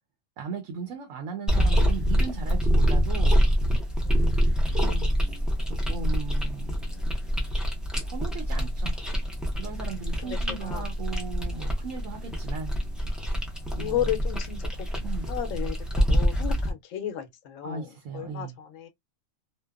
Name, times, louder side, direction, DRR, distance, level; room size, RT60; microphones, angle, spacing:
voice 1, 0.4-3.4 4.8-5.0 5.7-7.3 8.0-9.0 9.5-12.8 13.7-14.1 15.0-15.3 17.6-18.5, right 5 dB, 80° right, 1.0 m, -37 dB
sound 1, 1.5-16.7, equal, ahead, 0.4 m, -25 dB
voice 2, 4.0-4.6 10.2-10.9 13.8-14.9 15.3-18.9, left 11 dB, 80° left, 1.0 m, -34 dB
2.8 x 2.2 x 2.2 m
omnidirectional pair, 1.3 m